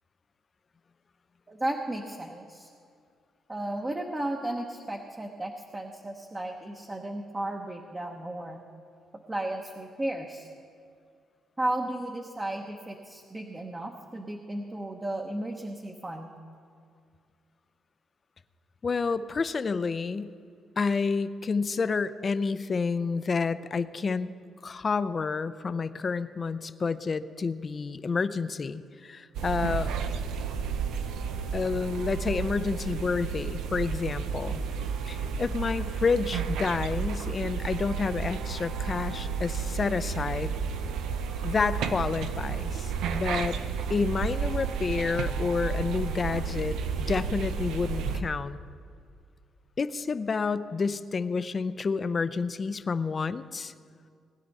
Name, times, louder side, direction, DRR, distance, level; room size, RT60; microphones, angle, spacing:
voice 1, 1.5-2.7 3.5-8.6 9.3-10.5 11.6-16.3, right 1 dB, 20° right, 1 dB, 1.0 m, -34 dB
voice 2, 18.8-20.3 20.8-24.3 24.6-30.0 31.5-34.6 35.1-40.5 41.4-43.6 43.9-48.6 49.8-53.7, left 4 dB, 35° left, 13 dB, 0.5 m, -29 dB
sound 1, 29.3-48.2, right 6 dB, 85° right, 0.6 m, -32 dB
20.0 x 10.0 x 4.2 m, 2.2 s
cardioid pair, 90°, 0 cm